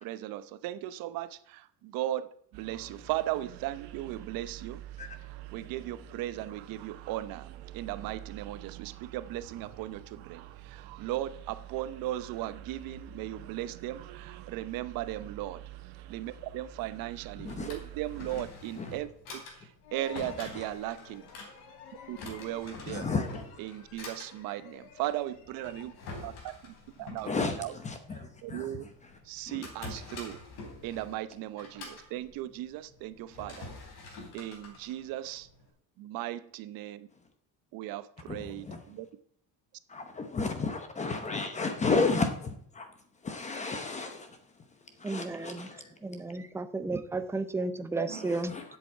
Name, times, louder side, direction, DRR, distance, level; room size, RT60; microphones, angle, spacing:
voice 1, 0.0-4.8 5.5-15.6 16.1-21.3 22.1-23.1 23.6-26.0 26.2-27.8 28.4-28.9 29.2-30.4 30.8-33.7 34.3-35.5 36.0-37.1 37.7-39.1 48.0-48.3, right 14 dB, 65° right, 0.9 m, -37 dB
sound 1, 2.5-18.4, right 11 dB, 90° right, 1.1 m, -47 dB
Drawer open or close, 17.1-35.7, left 2 dB, 60° left, 3.8 m, -47 dB
sound 2, 19.8-26.3, left 8 dB, 90° left, 2.3 m, -51 dB
voice 2, 22.9-23.4 27.2-28.7 29.5-29.6 38.3-38.8 39.9-42.9 43.2-44.3 45.0-45.9 48.5-48.6, left 4 dB, 20° left, 0.8 m, -32 dB
voice 3, 45.0-45.7 46.0-48.5, right 2 dB, 5° right, 0.5 m, -33 dB
7.9 x 7.7 x 8.4 m
cardioid pair, 180°, 37 cm